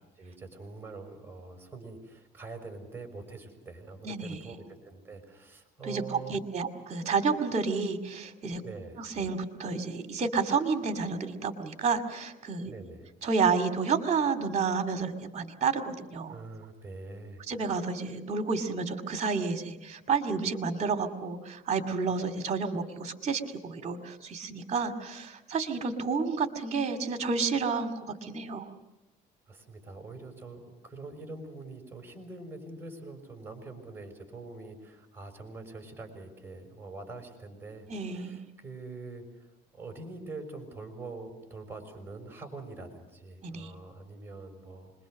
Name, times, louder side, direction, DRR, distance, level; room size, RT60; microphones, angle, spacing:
voice 1, 0.2-6.4 8.6-9.0 12.6-13.1 16.3-17.4 29.5-37.9 38.1-39.5 39.7-44.9, right 3 dB, 15° right, 3 dB, 6.0 m, -44 dB
voice 2, 4.0-4.4 5.8-8.6 9.0-12.7 13.2-16.3 17.5-28.7 37.9-38.4 43.4-43.7, right 5 dB, 40° right, 6 dB, 2.5 m, -30 dB
26.5 x 22.0 x 6.6 m, 1.0 s
cardioid pair, 110°, 17 cm